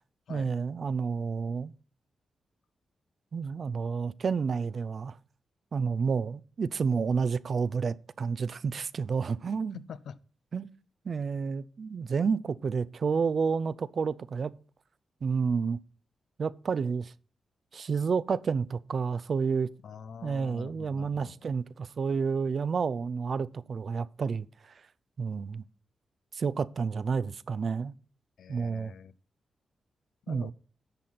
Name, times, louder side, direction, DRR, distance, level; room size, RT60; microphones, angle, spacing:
voice 1, 0.3-1.7 3.3-5.2 5.7-9.8 10.5-10.7 11.0-14.5 15.2-15.8 16.4-17.1 17.7-19.7 20.2-24.5 25.2-25.6 26.3-27.9 28.5-28.9 30.3-30.5, right 5 dB, 55° right, 0.4 m, -30 dB
voice 2, 9.7-10.2 19.8-21.4 28.4-29.2 30.3-30.5, left 7 dB, 75° left, 0.6 m, -45 dB
10.5 x 7.5 x 4.1 m
cardioid pair, 105°, 0 cm